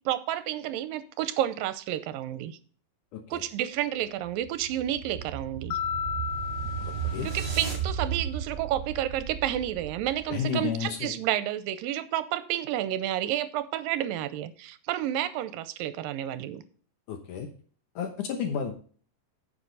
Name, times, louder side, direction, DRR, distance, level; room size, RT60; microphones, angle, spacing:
voice 1, 0.1-2.6 3.3-5.8 7.2-16.6, right 12 dB, 85° right, 13 dB, 2.3 m, -30 dB
sound 1, 4.1-10.4, right 7 dB, 30° right, 5.2 m, -35 dB
Mallet percussion, 5.7-8.1, left 8 dB, 85° left, 1.7 m, -34 dB
voice 2, 6.8-7.3 10.3-11.2 17.1-17.5 18.0-18.7, left 7 dB, 70° left, 6 dB, 2.4 m, -32 dB
9.8 x 7.5 x 3.9 m, 0.44 s
omnidirectional pair, 4.1 m